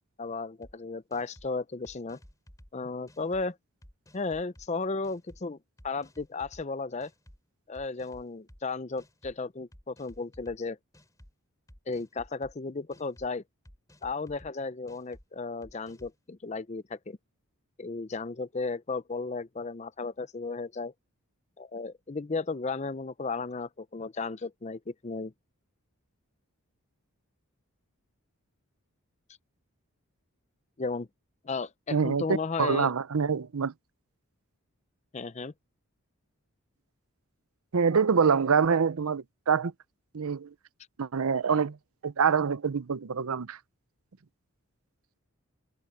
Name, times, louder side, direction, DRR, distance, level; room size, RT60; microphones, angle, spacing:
voice 1, 0.2-2.2 2.7-3.6 4.1-5.6 5.8-7.1 7.7-10.8 11.9-13.4 14.0-17.2 17.8-20.9 21.6-25.3 30.8-31.1 31.4-32.9 35.1-35.5, left 3 dB, 30° left, 0.5 m, -34 dB
sound 1, 0.6-0.7 1.1-1.5 1.8-2.7 3.1-3.4 3.8-4.7 5.0-5.4 5.8-6.6 7.0-7.4 7.7-8.6 9.0-9.4 9.7-10.6 10.9-11.3 11.7-12.5 12.9-13.3 13.6-14.5 14.9-15.2 15.6-16.2, equal, 15° left, 3.2 m, -54 dB
voice 2, 31.9-32.2 32.6-33.7 37.7-39.7 40.1-40.5 41.0-41.8 42.0-43.6, right 6 dB, 75° right, 0.6 m, -25 dB
head